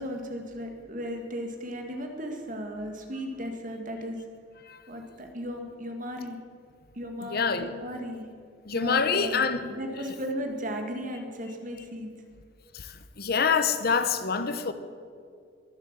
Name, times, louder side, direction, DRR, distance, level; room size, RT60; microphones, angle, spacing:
voice 1, 0.0-4.3 4.9-6.4 6.9-8.3 8.7-9.4 9.7-12.1, equal, 45° right, 2.1 m, -36 dB
voice 2, 7.3-7.7 8.7-9.7 12.7-14.7, left 5 dB, 55° left, 1.0 m, -26 dB
22.0 x 8.2 x 7.5 m
head